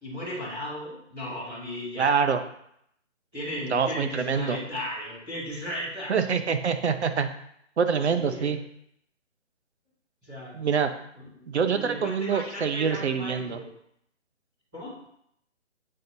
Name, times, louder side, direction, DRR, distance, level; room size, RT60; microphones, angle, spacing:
voice 1, 0.0-2.3 3.3-6.1 6.4-6.5 8.0-8.6 10.2-10.6 11.1-13.7 14.7-14.9, equal, 5° right, -17 dB, 0.5 m, -36 dB
voice 2, 2.0-2.4 3.7-4.6 6.1-7.3 7.8-8.6 10.5-10.9 11.5-13.6, right 6 dB, 65° right, 9 dB, 0.8 m, -25 dB
7.5 x 5.4 x 2.7 m, 0.72 s
hypercardioid pair, 160°, 37 cm